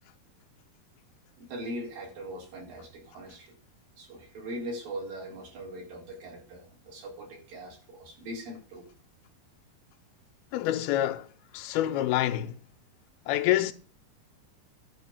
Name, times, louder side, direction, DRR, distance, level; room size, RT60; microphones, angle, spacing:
voice 1, 1.4-3.5 4.0-8.9, right 1 dB, 65° right, 5.6 m, -40 dB
voice 2, 10.5-11.3 11.5-12.6 13.3-13.7, left 13 dB, 85° left, 2.7 m, -27 dB
11.5 x 5.8 x 7.1 m
omnidirectional pair, 4.4 m